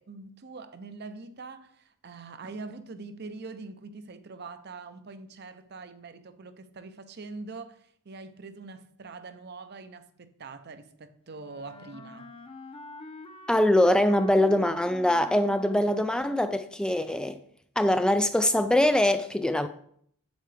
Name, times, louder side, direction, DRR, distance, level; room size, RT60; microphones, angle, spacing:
voice 1, 0.0-12.3, right 3 dB, 55° right, 0.7 m, -43 dB
Wind instrument woodwind instrument, 11.3-16.8, left 2 dB, 30° left, 0.8 m, -46 dB
voice 2, 13.5-17.4 17.8-19.7, left 1 dB, 5° left, 0.3 m, -23 dB
8.1 x 7.8 x 3.3 m
head